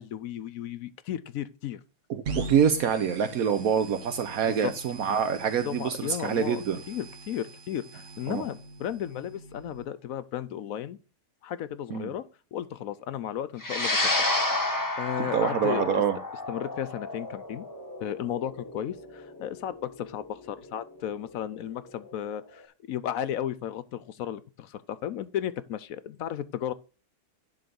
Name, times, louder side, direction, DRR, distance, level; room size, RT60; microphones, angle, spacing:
voice 1, 0.0-1.8 4.5-4.7 5.6-11.0 11.4-12.3 12.5-14.4 14.7-16.0 16.5-17.7 18.0-22.6 22.9-26.7, left 10 dB, 75° left, 1.0 m, -34 dB
voice 2, 2.1-6.8 8.3-8.4 11.9-12.1 15.2-16.2, right 7 dB, 75° right, 1.2 m, -26 dB
sound 1, 2.2-9.8, right 3 dB, 55° right, 1.6 m, -42 dB
sound 2, 13.6-22.2, left 2 dB, 15° left, 1.5 m, -31 dB
11.0 x 3.7 x 6.9 m
omnidirectional pair, 1.5 m